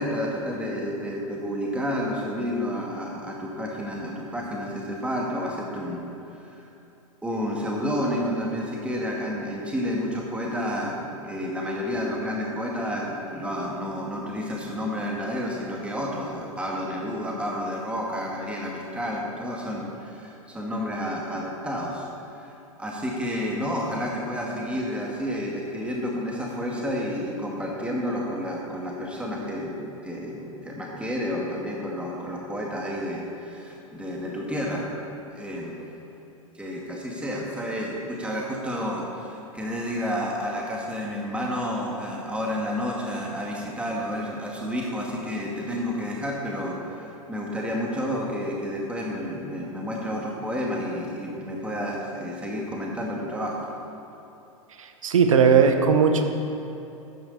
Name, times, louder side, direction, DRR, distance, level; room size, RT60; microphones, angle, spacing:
voice 1, 0.0-6.6 7.2-22.1 22.3-34.9 35.3-35.9 36.5-53.7, equal, 5° right, -2 dB, 2.1 m, -30 dB
voice 2, 54.8-56.3, right 6 dB, 65° right, 6 dB, 1.2 m, -18 dB
13.5 x 10.0 x 4.2 m, 2.9 s
figure-of-eight pair, 95°, 18 cm